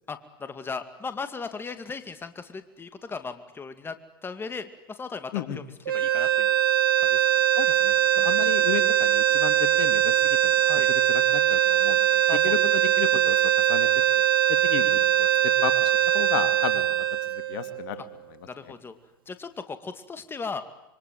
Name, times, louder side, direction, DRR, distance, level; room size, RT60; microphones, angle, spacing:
voice 1, 0.1-4.0 4.2-6.5 7.0-7.3 8.2-8.3 10.6-10.9 12.3-12.6 18.4-19.0 19.3-20.6, left 4 dB, 20° left, 10 dB, 2.3 m, -37 dB
sound 1, 5.9-18.1, right 11 dB, 85° right, 0.9 m, -22 dB
voice 2, 7.6-10.6 10.9-13.9 14.5-15.3 15.6-18.0 18.6-18.7, left 11 dB, 65° left, 11 dB, 2.6 m, -33 dB
27.0 x 23.5 x 9.3 m, 0.91 s
hypercardioid pair, 95°, 11 cm